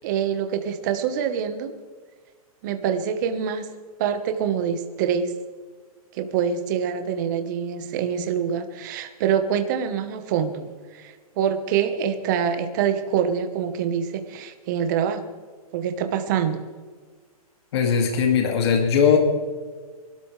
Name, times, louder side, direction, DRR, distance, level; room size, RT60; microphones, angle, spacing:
voice 1, 0.0-1.7 2.6-3.7 4.0-5.3 6.1-15.2 15.7-16.6, right 8 dB, 30° right, 8 dB, 1.2 m, -25 dB
voice 2, 17.7-19.2, left 6 dB, 45° left, 2 dB, 2.3 m, -19 dB
23.0 x 13.0 x 3.3 m, 1.5 s
hypercardioid pair, 170°, 19 cm